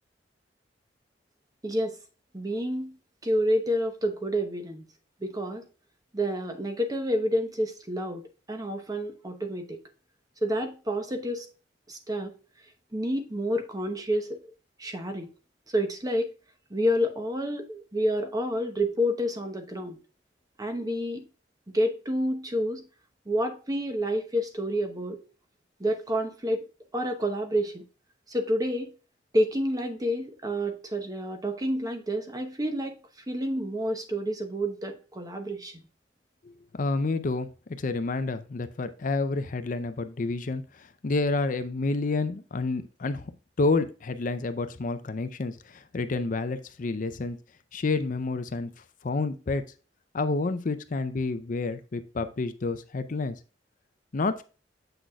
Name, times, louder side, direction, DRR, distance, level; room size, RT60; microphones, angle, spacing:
voice 1, 1.6-2.0 2.3-3.0 3.2-4.8 5.2-5.7 6.1-8.2 8.5-9.8 10.4-11.5 11.9-12.3 12.9-14.5 14.8-15.3 15.7-16.3 16.7-20.0 20.6-21.3 21.7-22.9 23.3-25.2 25.8-26.7 26.9-27.8 28.3-28.9 29.3-33.0 33.3-35.7, equal, 20° right, 0.9 m, -29 dB
voice 2, 36.7-43.3 43.6-47.4 47.7-48.7 49.0-49.6 50.1-53.4 54.1-54.4, left 3 dB, 45° left, 0.5 m, -29 dB
7.8 x 6.1 x 2.3 m
head